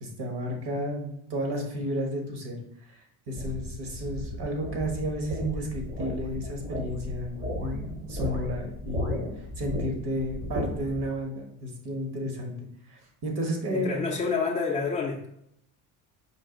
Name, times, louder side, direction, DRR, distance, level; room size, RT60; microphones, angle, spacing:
voice 1, 0.0-2.6 3.3-7.4 7.6-9.2 9.6-12.5 12.9-14.0, equal, 55° right, 2 dB, 1.4 m, -32 dB
sound 1, 3.4-11.1, left 1 dB, 20° right, 0.8 m, -35 dB
voice 2, 13.7-15.3, left 5 dB, 15° left, -4 dB, 0.4 m, -28 dB
5.3 x 2.5 x 3.8 m, 0.74 s
cardioid pair, 120°, 48 cm